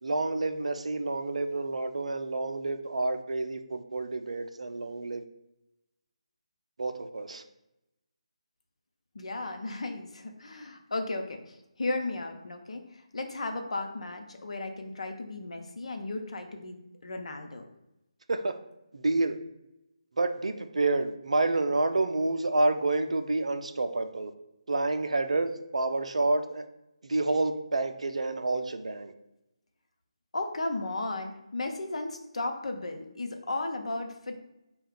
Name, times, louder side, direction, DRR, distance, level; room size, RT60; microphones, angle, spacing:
voice 1, 0.0-5.2 6.8-7.4 18.3-18.6 18.9-19.4 20.2-24.3 24.7-26.7 27.0-29.1, right 2 dB, 75° right, 8 dB, 0.4 m, -29 dB
voice 2, 9.1-17.6 30.3-34.4, left 2 dB, 70° left, 4 dB, 0.7 m, -35 dB
4.3 x 2.3 x 3.7 m, 0.89 s
figure-of-eight pair, 155°, 3 cm